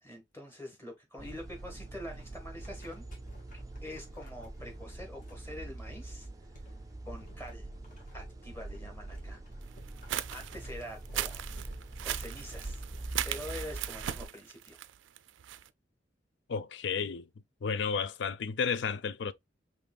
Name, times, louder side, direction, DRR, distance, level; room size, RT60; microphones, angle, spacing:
voice 1, 0.0-3.1 3.8-6.3 7.0-7.7 8.1-9.4 10.3-12.8 13.2-14.8, left 1 dB, 15° left, 1.4 m, -45 dB
sound 1, 1.2-13.7, left 1 dB, 45° left, 1.6 m, -59 dB
sound 2, 1.2-14.2, right 2 dB, 20° right, 0.4 m, -44 dB
sound 3, 9.8-15.7, right 12 dB, 80° right, 0.4 m, -38 dB
voice 2, 16.5-17.3 17.6-19.3, left 6 dB, 65° left, 0.4 m, -32 dB
5.1 x 3.1 x 2.2 m
head